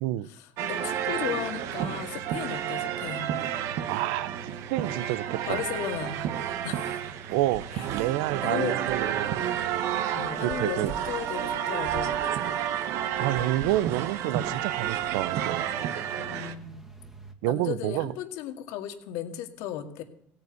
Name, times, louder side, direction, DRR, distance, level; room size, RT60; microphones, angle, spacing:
voice 1, 0.3-3.3 5.4-6.2 6.6-7.2 7.7-7.9 8.4-8.8 10.2-12.2 16.2-16.9 17.5-20.0, left 10 dB, 75° left, 7 dB, 2.1 m, -35 dB
sound 1, 0.6-16.5, right 10 dB, 65° right, 1.2 m, -31 dB
sound 2, 0.7-17.3, right 2 dB, 5° right, 2.0 m, -48 dB
voice 2, 3.9-5.6 7.3-7.7 7.9-9.4 10.4-10.9 13.2-15.7 17.4-18.1, right 16 dB, 85° right, 20 dB, 0.6 m, -29 dB
17.0 x 8.9 x 8.3 m, 0.67 s
cardioid pair, 130°, 5 cm